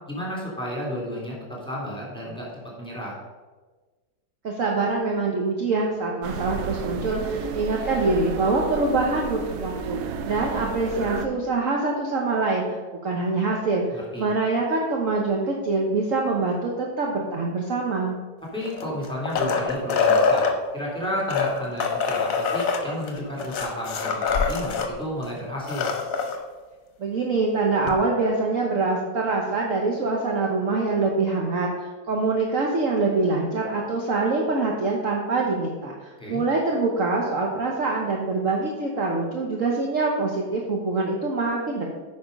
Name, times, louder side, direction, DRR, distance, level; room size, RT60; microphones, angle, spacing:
voice 1, 0.1-2.5 2.8-3.2 13.9-14.3 18.5-20.5 20.7-25.9 36.2-36.4, equal, 5° left, -4 dB, 2.6 m, -32 dB
voice 2, 4.4-12.6 13.0-18.2 27.0-41.9, right 3 dB, 50° right, -1 dB, 1.2 m, -25 dB
sound 1, 6.2-11.3, right 6 dB, 75° right, 1.3 m, -32 dB
sound 2, 18.6-20.5 21.2-24.9 25.2-25.3 25.6-26.4 27.9-28.0, left 5 dB, 55° left, 1.2 m, -24 dB
9.5 x 5.4 x 5.2 m, 1.3 s
omnidirectional pair, 2.0 m